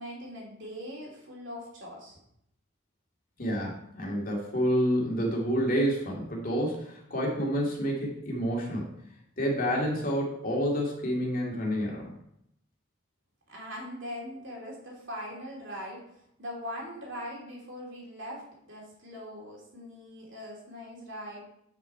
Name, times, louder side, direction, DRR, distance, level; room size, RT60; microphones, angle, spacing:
voice 1, 0.0-2.2 13.5-16.1 16.4-21.4, equal, 60° right, -3 dB, 3.0 m, -41 dB
voice 2, 3.4-8.9 9.4-12.0, equal, 40° left, -1 dB, 2.3 m, -28 dB
9.1 x 5.9 x 4.5 m, 0.74 s
head